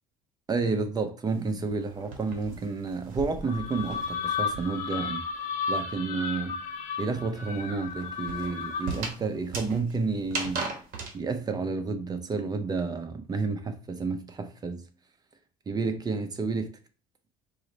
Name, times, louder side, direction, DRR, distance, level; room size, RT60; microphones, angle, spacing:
voice 1, 0.5-5.2 5.7-6.6 7.0-10.7 11.1-14.8 15.7-16.7, right 4 dB, 25° right, 0.5 m, -30 dB
sound 1, 1.3-5.0 5.3-11.2, right 3 dB, 60° right, 1.0 m, -39 dB
sound 2, 3.4-9.1, left 5 dB, 55° left, 0.9 m, -33 dB
4.8 x 2.0 x 3.9 m
cardioid pair, 125°, 15 cm